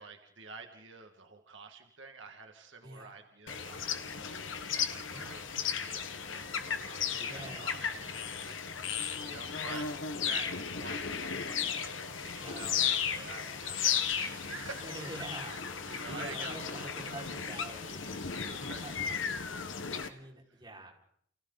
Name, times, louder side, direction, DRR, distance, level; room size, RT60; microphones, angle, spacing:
voice 1, 0.0-8.6 8.8-9.9 10.2-15.1 15.5-15.6 15.9-17.2 18.1-18.9 20.2-20.6, right 4 dB, 75° right, 4 dB, 2.1 m, -48 dB
voice 2, 2.8-3.2 5.1-5.4 7.1-7.7 12.3-12.7 14.8-15.5 16.0-19.2 19.5-19.7 20.0-20.9, right 2 dB, 25° right, -1 dB, 5.3 m, -46 dB
sound 1, 3.5-20.1, left 7 dB, 85° left, 1.4 m, -35 dB
30.0 x 29.5 x 4.1 m, 0.68 s
head